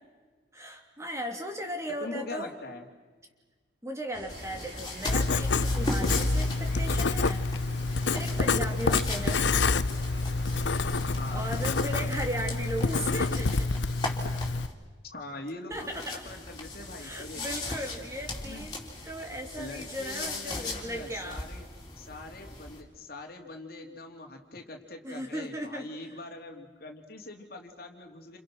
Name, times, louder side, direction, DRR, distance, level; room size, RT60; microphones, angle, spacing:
voice 1, 0.5-2.5 3.8-7.5 8.1-9.8 11.3-13.7 15.7-16.2 17.0-21.4 25.0-25.9, right 1 dB, 15° right, 3 dB, 3.1 m, -37 dB
voice 2, 2.0-2.8 8.9-9.6 11.1-12.0 15.0-17.4 18.4-18.7 19.6-21.7 22.0-28.4, left 2 dB, 50° left, 3 dB, 3.0 m, -43 dB
sound 1, 4.1-12.2, right 1 dB, 65° right, 6.0 m, -46 dB
sound 2, 4.3-14.7 15.7-22.8, left 2 dB, 20° left, 4.4 m, -39 dB
Writing, 5.1-14.7, left 3 dB, 70° left, 0.8 m, -27 dB
29.5 x 29.0 x 6.3 m, 1.3 s
head